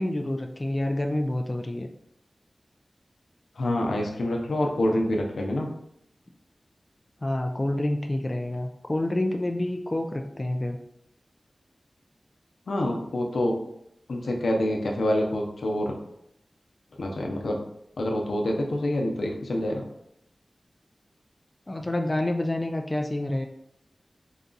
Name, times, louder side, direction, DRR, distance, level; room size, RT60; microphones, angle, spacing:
voice 1, 0.0-1.9 7.2-10.8 21.7-23.5, left 1 dB, 35° left, 3 dB, 0.4 m, -28 dB
voice 2, 3.6-5.7 12.7-13.6 14.1-15.9 17.0-17.6 18.0-19.8, left 1 dB, 90° left, 1 dB, 0.6 m, -26 dB
4.0 x 2.3 x 3.9 m, 0.74 s
cardioid pair, 40°, 0 cm